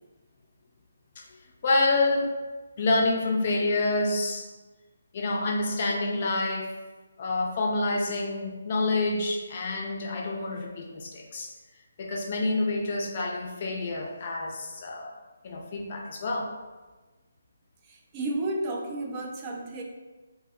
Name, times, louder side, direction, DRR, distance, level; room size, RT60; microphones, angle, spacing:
voice 1, 1.2-2.3 2.8-4.5 5.1-6.8 7.2-11.5 12.0-15.1 15.4-16.5, left 2 dB, 40° left, 1 dB, 0.4 m, -28 dB
voice 2, 17.8-19.8, right 2 dB, 25° right, 0 dB, 0.3 m, -32 dB
2.6 x 2.0 x 3.6 m, 1.2 s
figure-of-eight pair, 145°, 0 cm